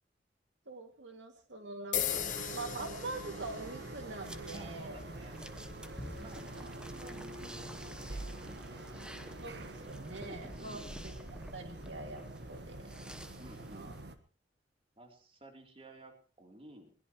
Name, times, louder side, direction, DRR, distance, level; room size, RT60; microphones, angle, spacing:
voice 1, 0.7-5.0 6.4-6.7 9.4-12.9 13.7-14.0, right 2 dB, 85° right, 4 dB, 2.4 m, -44 dB
sound 1, 1.9-10.0, left 10 dB, 45° left, 0.7 m, -43 dB
sound 2, 1.9-14.2, right 2 dB, 65° right, 1.5 m, -46 dB
sound 3, 4.2-14.0, equal, 5° right, 1.0 m, -50 dB
voice 2, 4.5-5.4 6.1-9.1 10.6-11.1 13.4-13.9 15.0-16.9, right 1 dB, 35° right, 3 dB, 3.4 m, -54 dB
21.5 x 19.5 x 3.1 m, 0.38 s
head